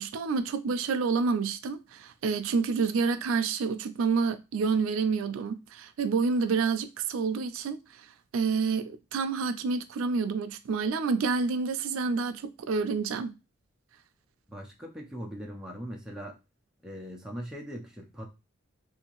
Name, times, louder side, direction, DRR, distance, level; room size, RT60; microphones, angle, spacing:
voice 1, 0.0-7.8 8.3-13.3, right 5 dB, 85° right, 0.4 m, -28 dB
voice 2, 14.5-16.4 16.8-18.3, equal, 5° right, 0.5 m, -40 dB
2.8 x 2.4 x 2.9 m
head